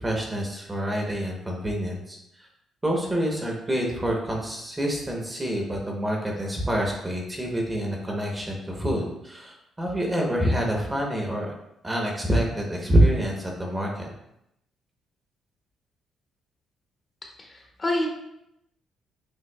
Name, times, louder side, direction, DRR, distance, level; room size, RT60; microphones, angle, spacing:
voice 1, 0.0-2.5 2.8-11.5 11.8-14.1, right 1 dB, 15° right, 0 dB, 0.9 m, -26 dB
voice 2, 17.4-18.1, left 1 dB, 30° left, 0 dB, 0.9 m, -27 dB
6.2 x 2.5 x 2.2 m, 0.81 s
cardioid pair, 90°, 0 cm